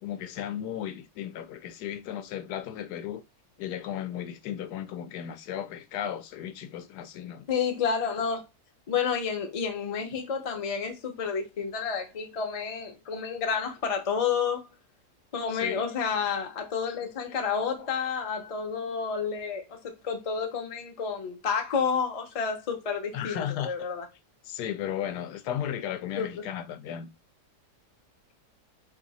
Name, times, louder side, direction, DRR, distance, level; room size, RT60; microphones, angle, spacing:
voice 1, 0.0-3.2 3.6-7.5 15.5-15.8 23.1-23.7 24.4-27.1, left 10 dB, 85° left, 1.2 m, -35 dB
voice 2, 7.5-8.4 8.9-14.7 15.3-24.0 26.1-26.3, left 6 dB, 45° left, 0.5 m, -30 dB
2.9 x 2.7 x 4.0 m
omnidirectional pair, 1.7 m